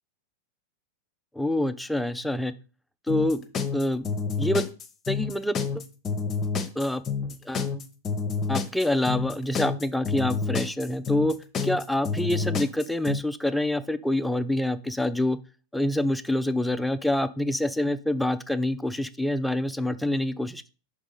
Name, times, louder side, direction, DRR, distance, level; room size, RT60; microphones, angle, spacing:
voice 1, 1.4-2.5 3.1-3.4 3.7-4.1 4.4-4.7 5.1-5.6 6.8-7.0 7.5-7.7 8.5-11.3 11.6-15.4 15.7-20.6, left 1 dB, 5° left, 12 dB, 0.5 m, -26 dB
sound 1, 3.1-13.2, left 5 dB, 25° left, 0.9 m, -28 dB
6.1 x 3.6 x 5.3 m, 0.35 s
figure-of-eight pair, 90°, 0 cm